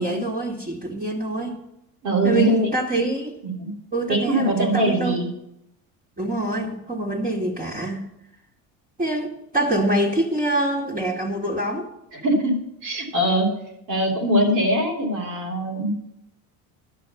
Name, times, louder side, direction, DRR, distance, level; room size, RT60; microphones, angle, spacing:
voice 1, 0.0-1.6 2.2-3.4 3.9-5.2 6.2-8.0 9.0-11.9, right 1 dB, 20° right, -4 dB, 2.0 m, -25 dB
voice 2, 2.0-2.7 3.4-3.7 4.1-5.3 12.1-12.5 12.8-13.5 13.9-15.9, right 1 dB, 90° right, -3 dB, 3.5 m, -22 dB
11.5 x 6.4 x 7.0 m, 0.81 s
supercardioid pair, 95°, 39 cm